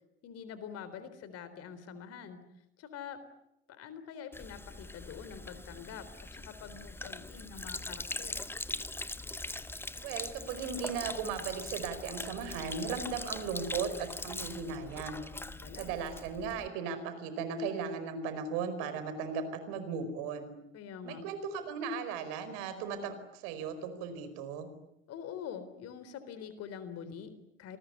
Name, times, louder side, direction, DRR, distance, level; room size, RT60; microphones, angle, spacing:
voice 1, 0.2-2.5 2.8-3.2 3.7-8.4 15.3-15.9 20.7-21.2 25.1-27.8, left 7 dB, 45° left, 12 dB, 4.0 m, -45 dB
Sink (filling or washing), 4.3-16.7, left 2 dB, 5° left, 1.2 m, -42 dB
voice 2, 10.0-15.2 15.7-20.5 21.0-24.7, right 5 dB, 60° right, 11 dB, 4.9 m, -37 dB
28.0 x 20.0 x 9.5 m, 0.85 s
figure-of-eight pair, 70°, 33 cm